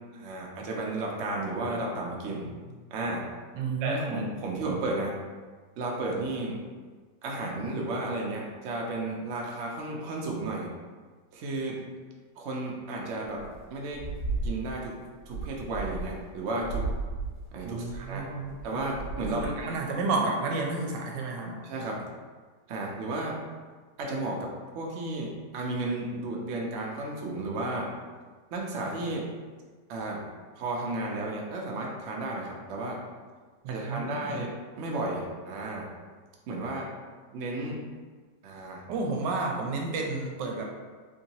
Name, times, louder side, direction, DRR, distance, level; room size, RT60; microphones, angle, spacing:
voice 1, 0.1-2.6 2.9-3.2 3.8-5.1 5.8-6.6 7.2-10.7 11.3-11.8 12.4-13.4 13.7-14.0 14.4-15.0 15.3-16.8 17.5-18.2 18.6-19.7 21.6-22.0 22.7-23.4 24.0-27.9 28.5-29.3 29.9-30.2 30.5-33.0 33.7-35.9 36.5-36.9 37.3-37.8 38.4-38.9, right 2 dB, 65° right, -1 dB, 0.7 m, -33 dB
voice 2, 3.5-4.2 17.6-18.5 19.2-21.6 33.6-34.4 38.9-40.6, right 3 dB, 85° right, 1 dB, 1.2 m, -31 dB
sound 1, 13.4-13.6 13.9-14.8 15.2-16.3 16.6-19.8, right 3 dB, 75° left, 1.9 m, -35 dB
3.6 x 2.7 x 2.8 m, 1.5 s
omnidirectional pair, 1.9 m